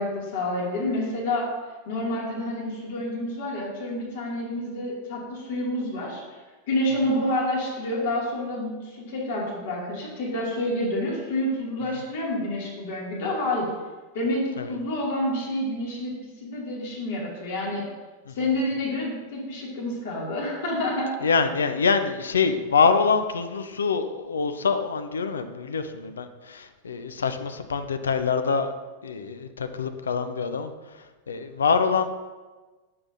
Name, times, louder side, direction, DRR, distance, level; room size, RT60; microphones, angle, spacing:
voice 1, 0.0-1.5 1.9-6.2 6.7-13.7 14.1-16.1 16.4-17.9 18.4-21.1, left 1 dB, 55° left, -4 dB, 2.5 m, -28 dB
voice 2, 21.2-28.7 29.0-32.1, left 5 dB, 70° left, 9 dB, 0.5 m, -25 dB
9.7 x 7.5 x 2.7 m, 1.3 s
figure-of-eight pair, 90°, 0 cm